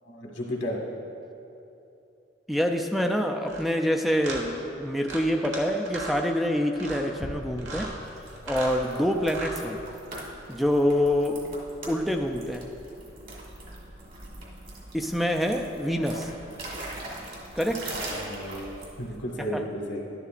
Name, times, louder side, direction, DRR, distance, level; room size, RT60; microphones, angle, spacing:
voice 1, 0.0-0.8 17.9-18.6 19.0-20.0, equal, 80° left, -1 dB, 1.6 m, -33 dB
voice 2, 2.5-7.9 8.5-9.8 10.5-11.4 11.9-12.7 14.9-16.3 17.6-17.8 19.5-19.6, equal, ahead, 4 dB, 0.3 m, -26 dB
sound 1, 3.4-3.6 4.2-4.4 5.0-5.6 5.9-6.2 6.7-7.1 7.6-7.9 8.4-8.8 9.2-9.6, right 2 dB, 75° right, 1.5 m, -37 dB
sound 2, 7.2-19.2, right 1 dB, 50° right, 1.9 m, -41 dB
11.5 x 11.0 x 2.5 m, 2.8 s
head